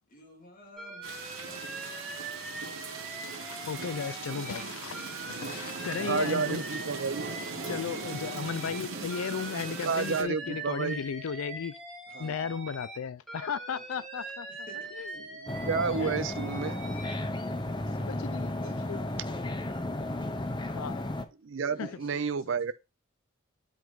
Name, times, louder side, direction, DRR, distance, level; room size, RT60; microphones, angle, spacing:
voice 1, 0.1-2.0 5.9-6.6 7.5-8.4 12.1-12.6 13.7-14.0 14.5-15.2 17.9-18.2 18.6-19.7 20.0-20.4 21.7-22.7, left 1 dB, 40° left, 2.2 m, -52 dB
Alarm, 0.8-4.6 4.9-8.8 9.1-13.0 13.3-17.1, right 3 dB, ahead, 1.8 m, -42 dB
sound 1, 1.0-10.2, right 4 dB, 85° right, 1.9 m, -39 dB
voice 2, 3.3-6.6 7.7-11.8 12.2-14.5 14.9-15.1 16.0-16.2 18.1-18.6 18.9-19.0 20.7-21.0 21.8-21.9, left 6 dB, 85° left, 0.4 m, -35 dB
voice 3, 6.1-7.2 9.8-11.0 15.3-16.8 21.4-22.7, right 5 dB, 65° right, 0.5 m, -30 dB
sound 2, 15.5-21.3, left 1 dB, 20° left, 0.6 m, -34 dB
8.1 x 3.4 x 4.6 m
head